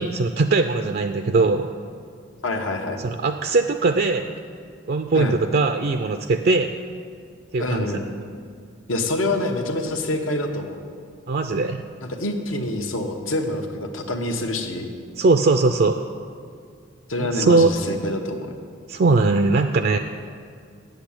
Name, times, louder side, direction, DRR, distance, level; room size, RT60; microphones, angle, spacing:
voice 1, 0.0-1.7 3.0-4.4 4.9-6.8 7.5-7.9 11.3-11.8 15.2-16.0 17.2-17.7 18.9-20.0, right 3 dB, 50° right, 7 dB, 0.4 m, -20 dB
voice 2, 2.4-3.0 5.1-5.4 7.6-8.1 8.9-10.8 12.0-14.9 17.1-18.5, left 2 dB, 80° left, 3 dB, 1.2 m, -26 dB
8.2 x 8.1 x 8.7 m, 2.2 s
head